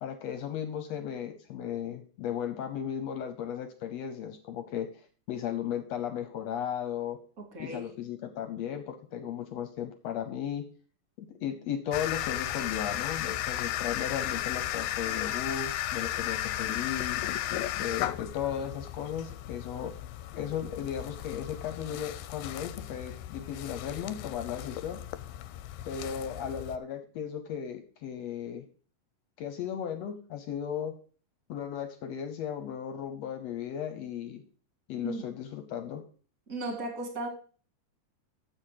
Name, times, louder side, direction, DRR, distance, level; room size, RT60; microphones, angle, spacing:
voice 1, 0.0-4.9 5.3-7.2 7.6-10.7 11.2-17.2 17.8-19.9 20.3-25.0 25.9-28.6 29.4-31.0 31.5-34.4 34.9-36.0, left 9 dB, 75° left, 8 dB, 1.6 m, -35 dB
voice 2, 7.4-7.9 35.0-35.3 36.5-37.3, right 2 dB, 30° right, 3 dB, 1.9 m, -36 dB
sound 1, 11.9-26.8, left 13 dB, 90° left, 2.3 m, -35 dB
7.3 x 6.4 x 6.5 m, 0.40 s
omnidirectional pair, 3.9 m